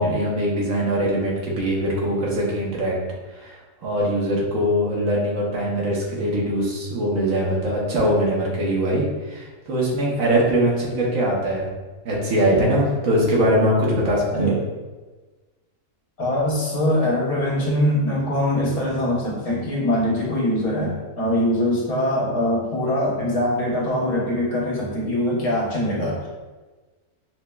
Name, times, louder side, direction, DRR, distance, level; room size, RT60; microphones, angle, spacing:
voice 1, 0.0-2.9 3.3-11.7 12.0-14.6, equal, 65° right, -4 dB, 1.1 m, -22 dB
voice 2, 16.2-26.3, left 1 dB, 75° left, -5 dB, 1.5 m, -22 dB
5.7 x 2.1 x 2.2 m, 1.3 s
omnidirectional pair, 1.6 m